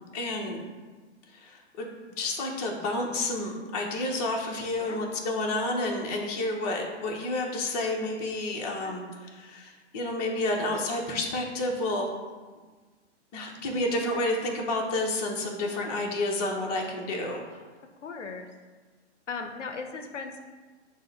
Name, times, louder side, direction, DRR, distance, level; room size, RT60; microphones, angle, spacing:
voice 1, 0.1-0.6 1.3-1.9 2.2-12.1 13.3-17.4, left 2 dB, 35° left, 1 dB, 0.7 m, -30 dB
voice 2, 18.0-18.5 19.3-20.4, left 4 dB, 85° left, 5 dB, 0.6 m, -38 dB
6.1 x 2.1 x 4.1 m, 1.4 s
figure-of-eight pair, 120°, 36 cm